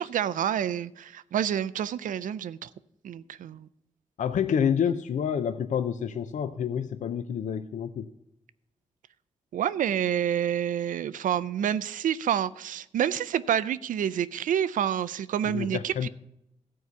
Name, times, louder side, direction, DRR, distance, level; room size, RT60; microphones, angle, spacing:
voice 1, 0.0-2.7 3.0-3.7 9.5-16.1, right 9 dB, 90° right, 17 dB, 0.4 m, -28 dB
voice 2, 4.2-8.1 15.5-16.1, left 8 dB, 75° left, 10 dB, 0.5 m, -28 dB
14.0 x 4.7 x 6.8 m, 0.81 s
wide cardioid pair, 100°, 13 cm